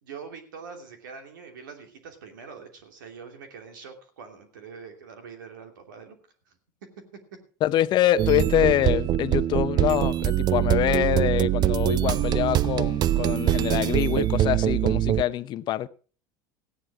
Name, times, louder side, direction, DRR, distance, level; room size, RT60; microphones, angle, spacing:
voice 1, 0.0-6.2 6.5-6.6 7.1-7.2, right 5 dB, 90° right, 2.8 m, -44 dB
voice 2, 7.6-15.9, left 12 dB, 45° left, 0.7 m, -25 dB
sound 1, 8.2-15.2, right 13 dB, 45° right, 0.5 m, -23 dB
15.5 x 9.8 x 4.7 m
supercardioid pair, 95°, 10 cm